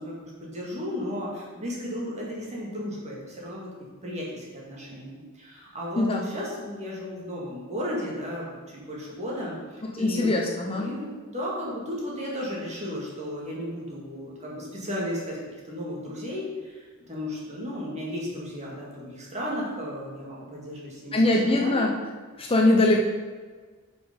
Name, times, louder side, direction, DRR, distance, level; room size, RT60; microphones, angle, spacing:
voice 1, 0.0-10.3 10.7-15.4 15.6-21.8, equal, 30° right, -4 dB, 2.2 m, -34 dB
voice 2, 9.9-10.9 21.1-21.9 22.4-23.1, left 2 dB, 25° left, 0 dB, 0.7 m, -22 dB
8.4 x 5.3 x 5.3 m, 1.5 s
head